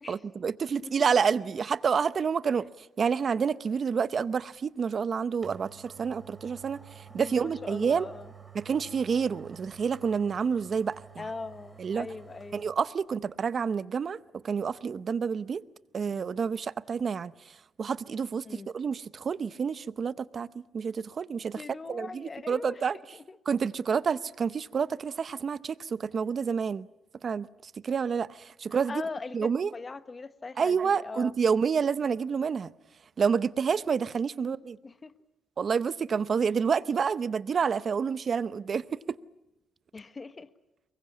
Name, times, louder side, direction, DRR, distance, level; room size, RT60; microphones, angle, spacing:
voice 1, 0.1-2.7 3.0-8.1 8.5-11.2 11.8-12.1 12.5-14.2 14.4-15.6 15.9-17.3 17.8-20.5 20.7-21.6 21.9-23.0 23.5-26.9 27.2-29.0 29.3-29.7 30.6-32.7 33.2-34.8 35.6-39.2, right 6 dB, 45° right, 0.8 m, -28 dB
sound 1, 4.9-5.0 5.4-12.7 13.1-13.2, right 7 dB, 20° right, 3.5 m, -50 dB
voice 2, 7.1-8.3 11.2-12.7 18.4-18.7 21.5-23.4 28.9-29.4 29.7-31.3 34.3-35.1 39.9-40.5, left 4 dB, 30° left, 1.3 m, -41 dB
23.5 x 21.5 x 8.7 m
cardioid pair, 90°, 0 cm